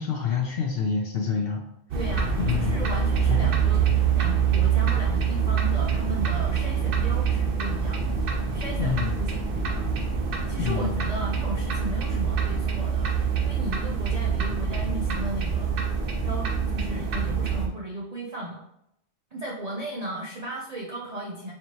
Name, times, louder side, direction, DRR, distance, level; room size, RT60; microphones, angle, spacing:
voice 1, 0.0-1.6 2.4-2.9 3.3-3.6 3.9-4.0 8.8-9.2 10.6-11.1, left 6 dB, 65° left, 1 dB, 0.6 m, -27 dB
sound 1, 1.9-17.7, right 6 dB, 55° right, 0.7 m, -25 dB
voice 2, 1.9-9.9 10.5-15.7 16.2-18.6 19.3-21.5, right 1 dB, 75° right, -2 dB, 0.3 m, -36 dB
4.4 x 2.9 x 2.8 m, 0.81 s
omnidirectional pair, 1.4 m